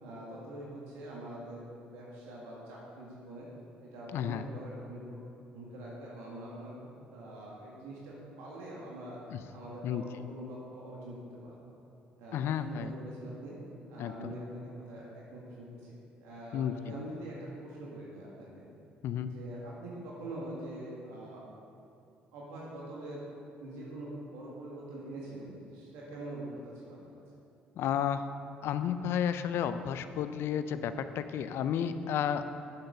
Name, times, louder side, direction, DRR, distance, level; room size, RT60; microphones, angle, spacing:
voice 1, 0.0-3.5 3.8-5.2 5.5-6.7 7.1-9.2 9.5-11.7 12.2-13.6 13.9-18.7 19.2-21.4 22.3-23.2 23.6-27.0, right 1 dB, 80° right, -5 dB, 1.9 m, -44 dB
voice 2, 4.1-4.5 9.3-9.4 9.8-10.3 12.3-12.9 14.0-14.4 16.5-17.0 19.0-19.3 27.8-28.3 28.6-32.5, left 9 dB, 65° left, 11 dB, 0.5 m, -32 dB
8.8 x 7.8 x 5.2 m, 2.6 s
hypercardioid pair, 60°, 4 cm